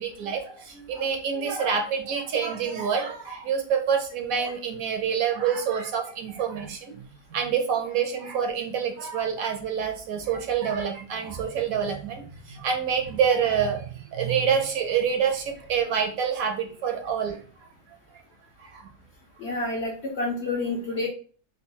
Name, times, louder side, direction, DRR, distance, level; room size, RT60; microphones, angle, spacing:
voice 1, 0.0-17.4 18.6-18.9 19.4-19.5, right 7 dB, 70° right, 3 dB, 1.0 m, -27 dB
voice 2, 19.4-21.1, left 2 dB, 60° left, -1 dB, 0.7 m, -29 dB
3.4 x 2.2 x 3.7 m, 0.41 s
omnidirectional pair, 1.7 m